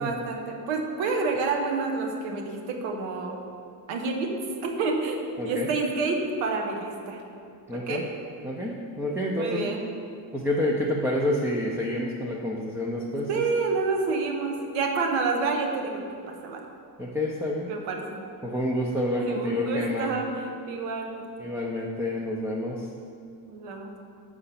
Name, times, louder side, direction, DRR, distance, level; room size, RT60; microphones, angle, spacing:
voice 1, 0.0-3.4 3.9-4.3 4.6-7.2 7.9-8.0 9.3-9.8 13.3-16.0 16.4-16.6 17.7-18.2 19.2-20.3 20.7-21.2 23.4-23.9, right 4 dB, 80° right, 2 dB, 1.1 m, -28 dB
voice 2, 7.7-8.0 8.4-9.6 10.3-13.4 17.0-17.8 18.4-20.1 21.4-22.9, left 1 dB, 5° right, -2 dB, 0.5 m, -28 dB
6.8 x 4.9 x 5.7 m, 2.4 s
cardioid pair, 125°, 44 cm